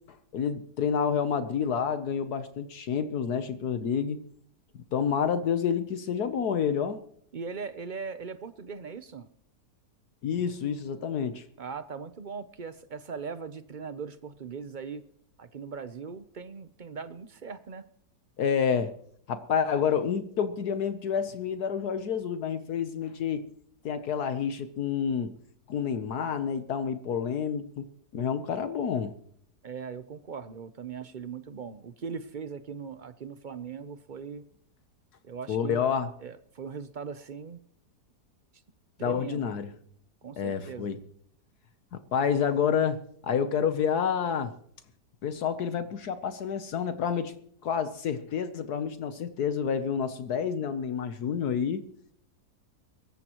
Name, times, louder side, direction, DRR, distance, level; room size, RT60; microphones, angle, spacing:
voice 1, 0.3-4.2 4.9-7.0 10.2-11.4 18.4-18.9 19.3-23.4 23.8-25.3 25.7-27.8 28.1-29.1 35.5-36.1 39.0-39.7 40.4-41.0 41.9-43.0 43.2-44.5 45.2-47.3 47.6-51.8, left 7 dB, 70° left, 10 dB, 1.4 m, -29 dB
voice 2, 7.3-9.3 11.6-15.0 15.4-17.9 29.6-34.4 35.2-35.9 36.2-37.6 39.0-39.4 40.2-40.9, right 5 dB, 50° right, 12 dB, 0.6 m, -39 dB
23.5 x 14.5 x 3.0 m, 0.65 s
omnidirectional pair, 1.8 m